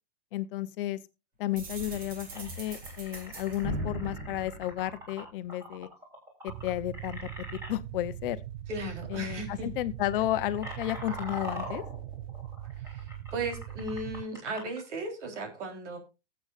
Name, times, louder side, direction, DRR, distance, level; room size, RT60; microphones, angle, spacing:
voice 1, 0.3-1.0 1.4-5.9 6.4-8.4 9.1-11.8, left 14 dB, 50° left, 0.7 m, -33 dB
sound 1, 1.6-5.4, right 1 dB, 25° right, 2.1 m, -39 dB
sound 2, 2.3-7.7 8.7-8.9 9.2-9.5 10.0-14.8, left 1 dB, 10° right, 3.6 m, -43 dB
sound 3, 6.5-14.2, right 13 dB, 60° right, 0.6 m, -41 dB
voice 2, 8.7-9.7 12.8-16.0, right 2 dB, 80° right, 3.8 m, -36 dB
19.0 x 7.9 x 2.5 m
supercardioid pair, 150°, 35 cm